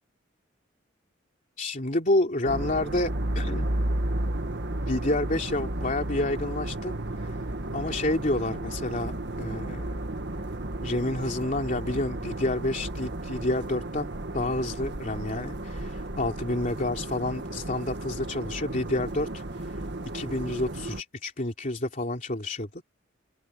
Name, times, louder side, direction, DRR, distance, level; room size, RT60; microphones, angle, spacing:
voice 1, 1.6-3.7 4.8-6.9 7.2-7.3 7.7-9.1 9.4-10.0 10.8-19.4 20.1-22.8, left 1 dB, 45° left, 3.2 m, -29 dB
sound 1, 2.4-21.0, right 1 dB, 60° right, 1.8 m, -33 dB
open air
head